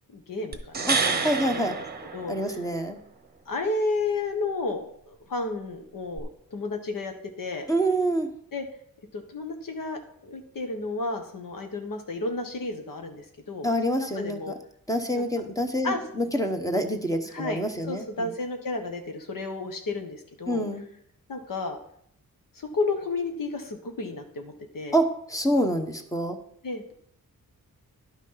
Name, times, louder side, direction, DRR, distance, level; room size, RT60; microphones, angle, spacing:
voice 1, 0.1-1.8 2.1-2.6 3.5-7.7 8.5-8.7 9.1-14.5 15.1-15.2 15.8-16.0 17.2-20.6 21.3-21.8 22.5-25.0 26.6-26.9, left 3 dB, 70° left, 5 dB, 1.5 m, -32 dB
sound 1, 0.5-2.8 6.2-6.3, right 4 dB, 30° right, 1.0 m, -28 dB
voice 2, 0.9-1.8 2.3-3.0 7.7-8.3 13.6-14.4 14.9-18.3 20.5-20.8 24.9-26.4, right 1 dB, 10° left, 6 dB, 1.0 m, -26 dB
11.0 x 6.2 x 5.7 m, 0.67 s
wide cardioid pair, 170°, 34 cm